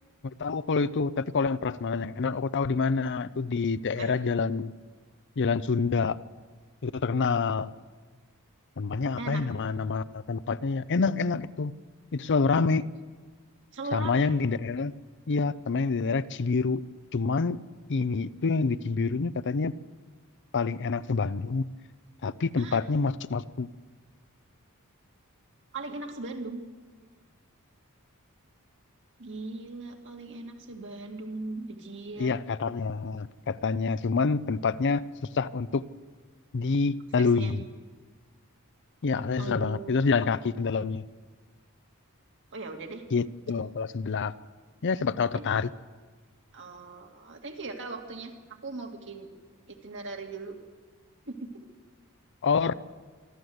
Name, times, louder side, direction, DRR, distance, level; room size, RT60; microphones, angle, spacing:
voice 1, 0.2-4.7 5.4-6.2 6.8-7.7 8.8-11.7 12.1-12.9 13.9-14.9 15.3-16.8 17.1-17.6 17.9-19.7 20.5-21.6 22.2-23.7 32.2-35.0 35.3-35.8 36.5-37.6 39.0-41.0 43.1-44.3 44.8-45.7 52.4-52.7, left 4 dB, 55° left, 0.6 m, -27 dB
voice 2, 13.7-14.3 22.6-22.8 25.7-26.6 29.2-32.4 37.2-37.6 39.4-40.1 42.5-43.0 45.3-45.5 46.5-49.3 49.7-50.6 51.3-51.5, right 3 dB, 55° right, 2.3 m, -39 dB
26.0 x 12.5 x 7.9 m
head